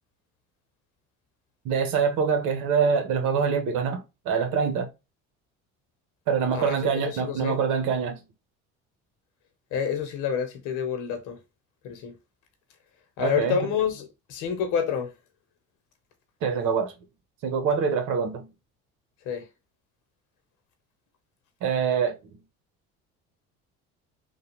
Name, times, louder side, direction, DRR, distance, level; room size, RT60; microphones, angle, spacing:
voice 1, 1.6-4.9 6.3-8.2 13.2-13.7 16.4-16.9 17.4-18.5 21.6-22.2, right 6 dB, 70° right, 1.1 m, -25 dB
voice 2, 6.5-7.6 9.7-11.4 11.8-12.1 13.2-15.1 19.3-19.4, left 7 dB, 75° left, 1.0 m, -28 dB
3.3 x 2.3 x 2.8 m
supercardioid pair, 95°, 31 cm